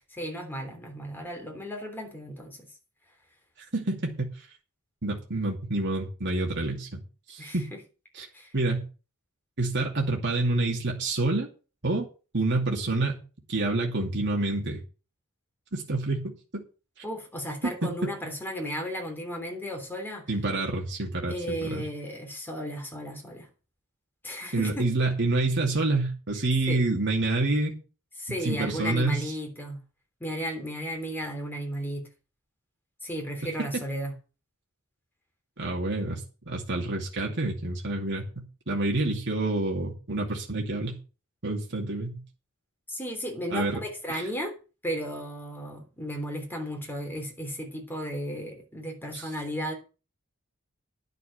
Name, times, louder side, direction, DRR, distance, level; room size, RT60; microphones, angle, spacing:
voice 1, 0.1-2.7 7.4-7.8 8.3-8.5 17.0-20.3 21.3-23.5 24.2-24.9 26.7-26.8 28.2-29.8 30.2-32.1 33.0-34.1 42.9-44.5 44.8-49.7, equal, 10° left, 3.3 m, -34 dB
voice 2, 3.7-4.1 5.0-7.0 7.3-7.7 8.1-8.3 8.5-8.8 9.6-11.5 11.8-12.1 12.3-13.2 13.5-14.8 15.7-16.6 17.6-17.7 20.3-21.9 24.5-27.7 28.4-29.3 33.7-33.8 35.6-38.3 38.7-41.0 41.4-42.2 43.5-43.8 44.1-44.3 49.1-49.2, right 2 dB, 55° right, 2.5 m, -28 dB
11.0 x 6.7 x 7.5 m
head